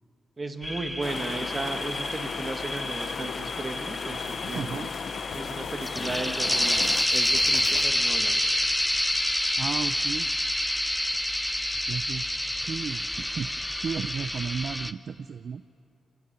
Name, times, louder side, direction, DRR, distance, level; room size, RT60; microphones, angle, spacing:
voice 1, 0.4-4.8 5.3-8.4, right 3 dB, 25° right, 7 dB, 1.4 m, -35 dB
sound 1, 0.6-14.9, left 1 dB, 5° left, 0.6 m, -28 dB
sound 2, 1.0-7.0, left 7 dB, 60° left, 0.7 m, -36 dB
sound 3, 4.1-6.2 6.6-8.1, left 4 dB, 85° left, 3.8 m, -46 dB
voice 2, 4.5-4.9 9.6-10.3 11.9-13.5 13.8-15.6, right 6 dB, 55° right, 11 dB, 0.4 m, -34 dB
23.5 x 14.0 x 8.7 m, 2.6 s
wide cardioid pair, 125°, 0 cm